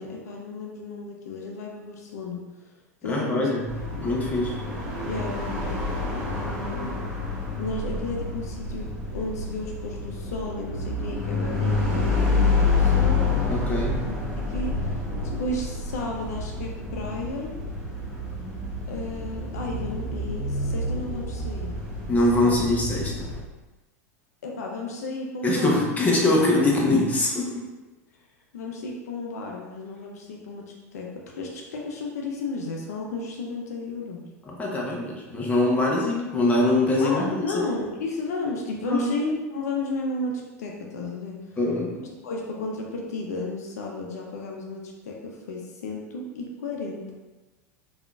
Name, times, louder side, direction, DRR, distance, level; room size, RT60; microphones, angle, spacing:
voice 1, 0.0-2.7 3.0-3.5 3.9-4.1 5.0-5.8 6.3-7.0 7.6-13.2 14.0-15.0 15.4-17.5 18.9-21.8 24.4-25.9 28.5-34.2 37.0-41.6 42.0-47.1, left 2 dB, 75° left, 0 dB, 0.5 m, -33 dB
voice 2, 3.0-3.7 4.0-4.5 13.5-14.0 22.1-23.3 25.4-27.6 34.4-37.6 38.9-39.1 41.6-42.0, left 2 dB, 20° left, -2 dB, 0.8 m, -23 dB
sound 1, 3.7-23.4, left 3 dB, 10° right, 1.1 m, -28 dB
3.5 x 2.4 x 2.3 m, 1.2 s
hypercardioid pair, 90°, 9 cm